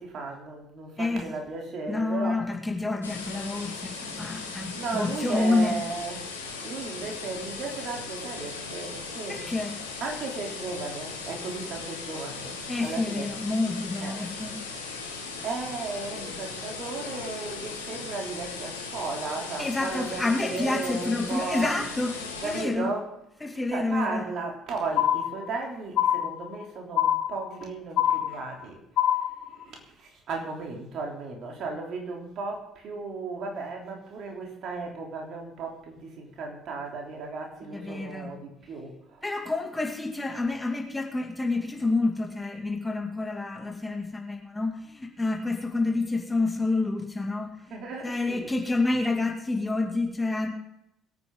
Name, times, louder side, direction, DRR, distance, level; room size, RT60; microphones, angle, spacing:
voice 1, 0.0-2.4 4.7-6.3 6.6-9.6 10.0-13.3 14.0-14.2 15.4-21.8 22.4-23.1 23.7-28.8 29.1-39.2 47.7-48.5, right 3 dB, 50° right, 1 dB, 3.4 m, -35 dB
voice 2, 1.9-5.8 9.3-9.8 12.7-14.6 19.6-22.9 23.4-24.2 37.7-38.3 39.2-47.5 48.0-50.5, left 3 dB, 15° left, 2 dB, 2.3 m, -28 dB
sound 1, 3.0-22.6, left 4 dB, 80° left, 1.7 m, -38 dB
sound 2, 25.0-25.6 26.0-26.6 27.0-27.6 28.0-28.6 29.0-29.6, left 11 dB, 55° left, 0.7 m, -25 dB
22.0 x 9.4 x 3.9 m, 0.79 s
figure-of-eight pair, 55°, 0 cm